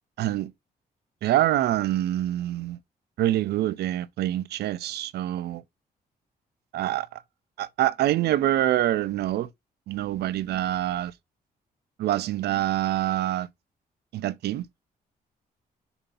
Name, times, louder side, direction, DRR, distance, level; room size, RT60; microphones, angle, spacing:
voice 1, 0.2-0.5 1.2-2.8 3.2-5.6 6.7-7.2 7.6-9.5 9.9-11.1 12.0-13.5 14.1-14.7, right 13 dB, 85° right, 0.5 m, -25 dB
7.0 x 2.7 x 5.3 m
cardioid pair, 100°, 16 cm